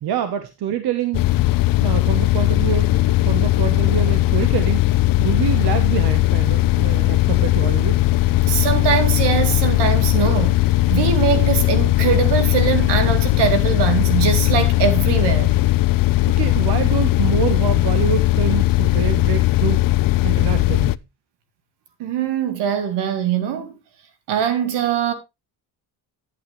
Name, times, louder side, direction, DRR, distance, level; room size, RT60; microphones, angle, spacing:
voice 1, 0.0-1.2 1.8-8.0 16.3-19.8 20.2-21.0, right 9 dB, 70° right, 1.2 m, -26 dB
sound 1, 1.1-21.0, left 17 dB, 60° left, 0.5 m, -18 dB
voice 2, 8.4-10.6 10.9-15.6 22.0-23.8 24.3-25.1, right 8 dB, 85° right, 2.1 m, -22 dB
11.0 x 8.8 x 3.2 m
cardioid pair, 100°, 40 cm